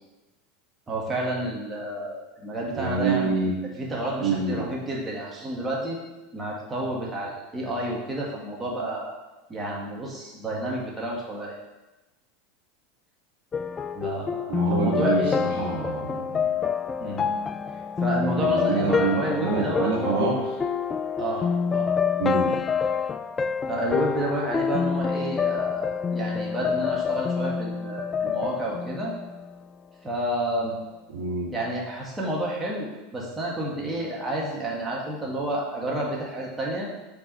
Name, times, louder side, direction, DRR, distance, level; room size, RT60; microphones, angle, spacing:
voice 1, 0.9-3.4 3.8-6.0 6.3-9.1 9.5-11.6 13.9-15.8 17.0-17.3 18.0-19.9 21.2-21.9 23.7-29.1 30.0-30.8 31.5-36.9, right 1 dB, 20° right, -3 dB, 1.8 m, -30 dB
voice 2, 2.8-3.5 4.2-4.7 14.5-16.4 18.3-20.6 22.2-22.6 31.1-31.5, right 4 dB, 75° right, -2 dB, 1.9 m, -26 dB
sound 1, 13.5-29.6, left 6 dB, 25° left, 0.3 m, -27 dB
4.8 x 4.8 x 5.4 m, 1.1 s
hypercardioid pair, 95°, 0 cm